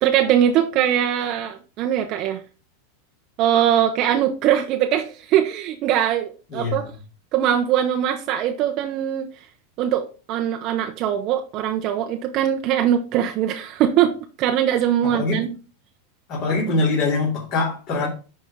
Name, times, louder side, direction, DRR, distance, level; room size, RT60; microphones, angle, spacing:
voice 1, 0.0-2.4 3.4-6.9 7.3-9.3 9.8-15.5, right 10 dB, 50° right, 0.8 m, -21 dB
voice 2, 6.5-6.9 15.0-15.4 16.3-18.1, left 3 dB, 50° left, 3.1 m, -23 dB
10.0 x 4.5 x 3.7 m
hypercardioid pair, 115°, 0 cm